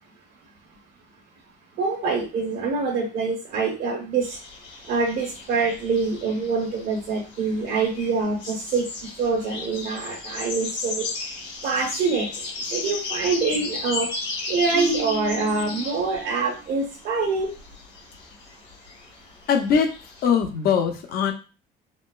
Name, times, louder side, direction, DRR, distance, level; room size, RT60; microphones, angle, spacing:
voice 1, 1.8-4.4 4.9-8.8 9.2-11.1 11.6-12.3 12.7-14.1 14.5-17.5, right 4 dB, 70° right, -5 dB, 1.1 m, -25 dB
sound 1, 4.2-20.2, left 4 dB, 85° left, 1.7 m, -35 dB
Marimba xylophone, 14.7-16.8, right 10 dB, 40° right, 0.5 m, -36 dB
voice 2, 19.5-19.9 20.2-21.3, left 7 dB, 65° left, 4 dB, 0.7 m, -21 dB
4.2 x 2.0 x 2.4 m, 0.32 s
cardioid pair, 110°, 17 cm